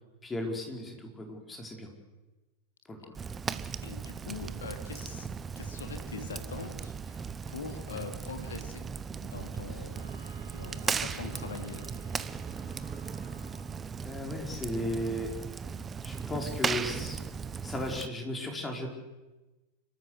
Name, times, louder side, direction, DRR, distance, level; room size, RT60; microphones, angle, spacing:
voice 1, 0.2-1.9 2.9-3.1 7.9-8.0 14.0-15.3 16.0-17.2 17.6-18.9, left 1 dB, 15° left, 2 dB, 4.8 m, -35 dB
Fire, 3.1-18.1, right 6 dB, 20° right, 0.7 m, -37 dB
voice 2, 3.8-5.3 5.5-8.8 9.2-11.9, left 5 dB, 70° left, 6 dB, 3.0 m, -43 dB
Wind instrument woodwind instrument, 9.9-14.0, right 4 dB, 55° right, 4.5 m, -55 dB
29.0 x 13.5 x 8.1 m, 1.1 s
figure-of-eight pair, 90°, 0 cm